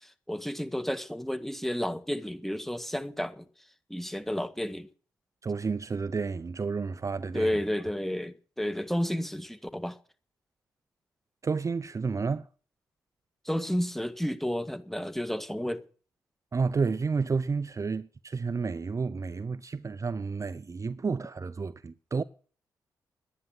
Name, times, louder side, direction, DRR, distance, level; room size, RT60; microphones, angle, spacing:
voice 1, 0.3-3.4 3.9-4.9 7.3-10.0 13.4-15.8, equal, 5° left, 1.6 m, -31 dB
voice 2, 5.4-7.5 11.4-12.5 16.5-22.2, right 4 dB, 40° right, 0.6 m, -31 dB
10.5 x 10.5 x 7.7 m
hypercardioid pair, 40°, 9 cm